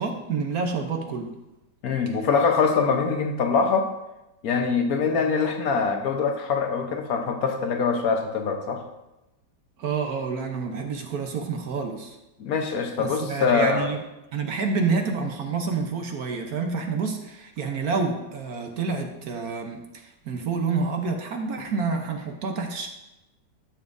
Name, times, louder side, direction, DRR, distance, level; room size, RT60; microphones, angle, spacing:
voice 1, 0.0-1.3 9.8-12.2 13.0-14.0 14.3-22.9, right 4 dB, 60° right, 3 dB, 1.2 m, -28 dB
voice 2, 1.8-3.9 4.4-8.8 12.4-13.9, left 5 dB, 55° left, 4 dB, 1.3 m, -23 dB
13.0 x 7.0 x 2.6 m, 0.97 s
omnidirectional pair, 2.0 m